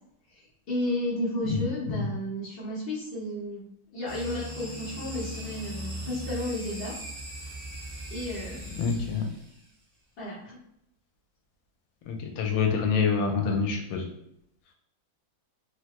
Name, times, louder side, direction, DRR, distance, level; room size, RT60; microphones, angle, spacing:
voice 1, 0.3-3.6 3.9-7.0 8.1-8.7 10.2-10.6, left 1 dB, 45° left, -9 dB, 0.8 m, -33 dB
sound 1, 4.1-9.6, right 1 dB, 15° right, 0.6 m, -39 dB
voice 2, 8.8-9.2 12.1-14.0, left 5 dB, 90° left, 3 dB, 1.3 m, -26 dB
3.3 x 2.1 x 2.9 m, 0.76 s
omnidirectional pair, 2.0 m